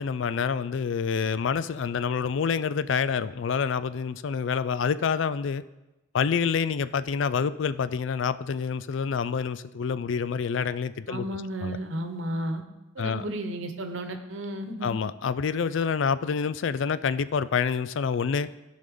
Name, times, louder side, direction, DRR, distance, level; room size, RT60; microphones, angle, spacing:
voice 1, 0.0-5.6 6.1-11.3 11.6-11.8 13.0-13.2 14.8-18.5, left 6 dB, 70° left, 15 dB, 0.4 m, -27 dB
voice 2, 11.1-12.6 12.9-14.9, right 1 dB, 80° right, 6 dB, 1.0 m, -33 dB
15.5 x 5.5 x 3.8 m, 1.0 s
head